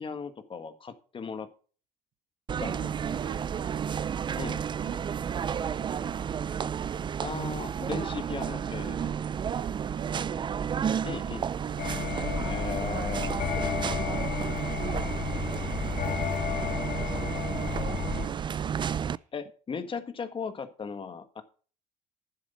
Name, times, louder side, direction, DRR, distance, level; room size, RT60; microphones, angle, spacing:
voice 1, 0.0-1.5 2.6-2.9 4.4-4.6 7.2-9.1 11.0-11.5 12.4-14.0 19.3-21.4, left 5 dB, 40° left, 10 dB, 1.5 m, -37 dB
sound 1, 2.5-19.2, right 8 dB, 35° right, 0.4 m, -32 dB
voice 2, 2.6-4.3 4.8-6.5 7.8-8.1 8.8-11.1 11.6-11.9 12.1-12.6 13.9-19.3, right 10 dB, 60° right, 7 dB, 1.0 m, -44 dB
sound 2, 11.8-18.3, left 8 dB, 70° left, 1.8 m, -32 dB
10.5 x 7.6 x 5.4 m, 0.40 s
supercardioid pair, 75°, 14 cm